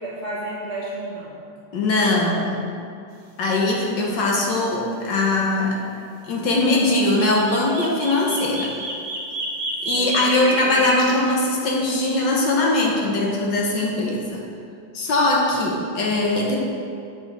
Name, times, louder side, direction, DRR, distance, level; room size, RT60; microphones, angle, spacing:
voice 1, 0.0-1.4 9.9-11.1 15.5-15.7, right 1 dB, 40° right, -7 dB, 1.3 m, -33 dB
voice 2, 1.7-2.7 3.4-5.8 6.3-8.7 9.8-14.4 14.9-16.6, left 2 dB, 65° left, -2 dB, 1.5 m, -21 dB
sound 1, 3.4-3.6 3.9-4.0 6.6-11.2, right 1 dB, 75° right, 0.4 m, -29 dB
8.1 x 6.1 x 4.2 m, 2.4 s
omnidirectional pair, 2.2 m